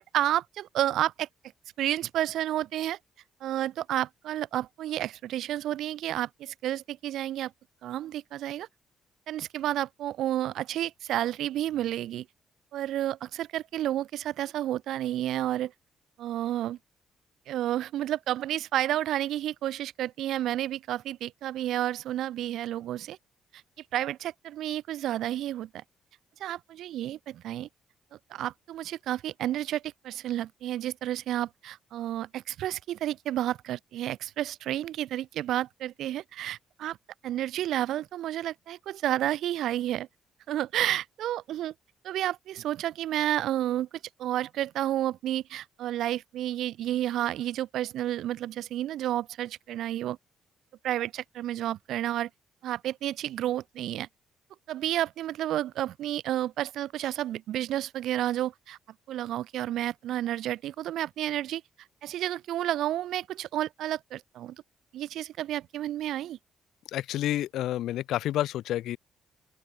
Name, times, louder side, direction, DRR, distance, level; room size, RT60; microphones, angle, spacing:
voice 1, 0.1-1.3 1.8-3.0 3.4-7.5 7.8-8.7 9.3-12.3 12.7-15.7 16.2-16.8 17.5-23.2 23.9-25.8 26.4-27.7 28.3-37.0 37.2-40.1 40.5-41.7 42.0-43.9 44.2-50.2 50.8-52.3 52.6-54.1 54.7-58.8 59.1-61.6 62.0-64.6 64.9-66.4, right 12 dB, 80° right, 4.0 m, -31 dB
voice 2, 66.9-69.0, left 13 dB, 80° left, 5.9 m, -29 dB
open air
cardioid pair, 90°, 0 cm